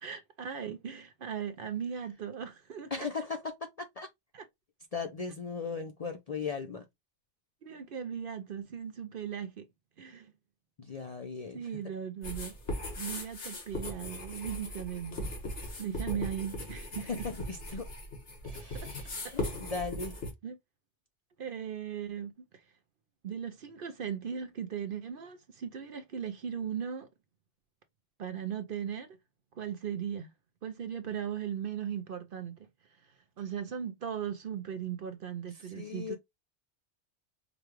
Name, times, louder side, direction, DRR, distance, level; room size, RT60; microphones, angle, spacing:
voice 1, 0.0-2.9 4.3-4.4 7.6-9.7 10.0-10.3 11.5-12.5 13.0-15.3 15.8-17.1 18.6-18.9 19.2-19.3 20.4-20.6 21.4-22.5 23.2-27.1 28.2-29.2 29.6-30.3 30.6-32.7 33.0-36.2, right 8 dB, 55° right, 0.7 m, -38 dB
voice 2, 2.9-4.1 4.9-6.9 10.8-11.7 16.1-16.3 17.0-17.9 18.4-20.2 35.5-36.2, left 4 dB, 45° left, 0.5 m, -38 dB
sound 1, 12.2-20.3, left 1 dB, 70° left, 1.7 m, -39 dB
4.9 x 2.3 x 3.0 m
omnidirectional pair, 1.2 m